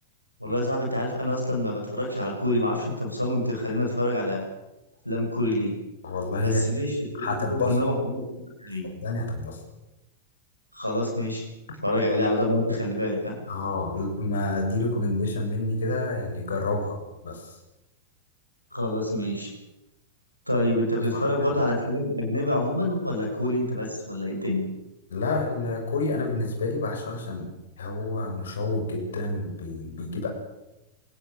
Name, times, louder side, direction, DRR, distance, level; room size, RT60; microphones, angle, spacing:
voice 1, 0.4-4.5 5.0-5.7 6.4-8.8 10.7-11.5 11.8-13.4 18.7-19.5 20.5-24.6, left 1 dB, 90° left, -1 dB, 7.6 m, -27 dB
voice 2, 6.0-6.6 7.1-7.8 8.8-9.6 13.5-17.6 21.1-21.6 25.1-27.5 27.8-30.3, left 2 dB, 65° left, 2 dB, 7.1 m, -29 dB
27.0 x 18.5 x 9.0 m, 0.96 s
figure-of-eight pair, 90°, 0 cm